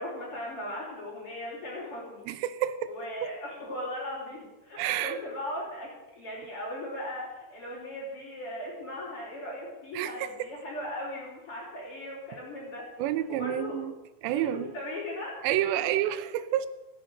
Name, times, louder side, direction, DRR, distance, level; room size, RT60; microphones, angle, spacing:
voice 1, 0.0-2.3 2.8-12.8 13.3-13.8 14.3-15.6, left 1 dB, 30° left, -9 dB, 4.5 m, -38 dB
voice 2, 2.3-2.9 3.2-3.3 4.8-5.2 9.9-10.5 13.0-13.9 14.2-14.7 15.4-16.7, right 12 dB, 80° right, 12 dB, 2.9 m, -29 dB
17.5 x 10.0 x 6.5 m, 1.0 s
omnidirectional pair, 5.1 m